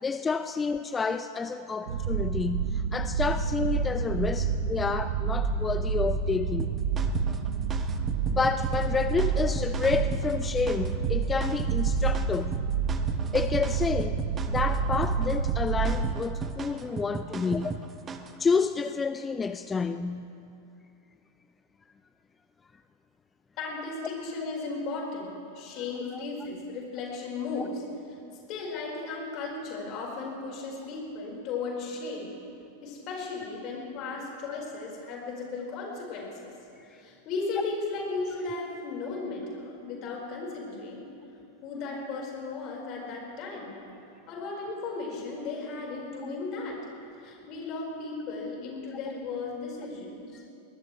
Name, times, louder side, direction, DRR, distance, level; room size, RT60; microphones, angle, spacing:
voice 1, 0.0-6.8 8.3-12.6 13.3-14.2 14.5-17.8 18.4-20.3 27.6-27.7, left 5 dB, 15° left, 11 dB, 0.4 m, -29 dB
sound 1, 1.9-16.2, right 5 dB, 60° right, 1.1 m, -29 dB
sound 2, 6.6-18.4, right 5 dB, 20° right, 0.9 m, -37 dB
voice 2, 23.6-27.8 28.5-32.3 32.8-36.5 36.9-41.1 41.6-43.8 44.3-46.8 47.2-50.4, left 3 dB, 40° left, -2 dB, 4.7 m, -35 dB
22.5 x 19.5 x 3.2 m, 2.7 s
figure-of-eight pair, 90°, 0 cm